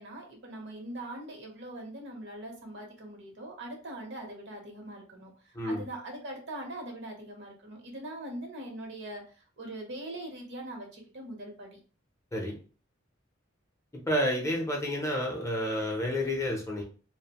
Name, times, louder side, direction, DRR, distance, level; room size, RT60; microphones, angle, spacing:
voice 1, 0.0-5.3 5.7-9.2 9.6-11.8, right 1 dB, 60° right, 2 dB, 0.8 m, -41 dB
voice 2, 14.1-16.8, equal, 15° left, 0 dB, 0.6 m, -30 dB
2.5 x 2.0 x 2.8 m, 0.38 s
head